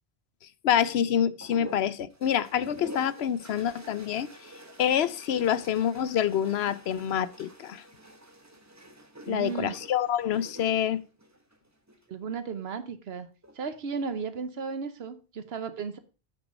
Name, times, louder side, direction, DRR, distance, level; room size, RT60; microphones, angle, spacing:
voice 1, 0.6-4.3 4.8-7.8 9.3-11.0, left 9 dB, 80° left, 0.9 m, -27 dB
sound 1, 1.4-12.1 13.3-13.8, equal, 15° right, 1.1 m, -48 dB
voice 2, 9.3-9.8 12.1-13.3 13.5-16.0, right 5 dB, 75° right, 1.1 m, -34 dB
8.1 x 6.2 x 5.1 m
omnidirectional pair, 1.1 m